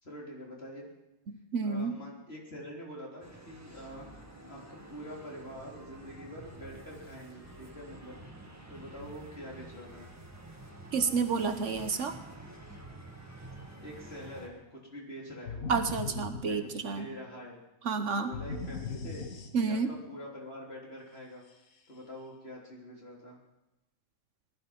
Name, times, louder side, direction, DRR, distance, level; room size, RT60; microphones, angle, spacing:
voice 1, 0.0-0.9 1.6-4.1 4.4-8.2 8.7-10.1 13.8-15.7 16.4-17.6 18.0-19.3 19.6-21.5 21.9-23.4, equal, 45° left, -2 dB, 3.7 m, -45 dB
voice 2, 1.3-1.9 10.9-12.2 15.7-17.1 17.8-18.3 19.5-19.9, right 5 dB, 60° right, 8 dB, 1.2 m, -30 dB
sound 1, 3.2-14.5, right 2 dB, 10° right, 1.6 m, -49 dB
sound 2, 15.5-17.2 18.3-20.0, left 4 dB, 85° left, 1.7 m, -39 dB
19.0 x 12.5 x 5.8 m, 0.99 s
omnidirectional pair, 1.4 m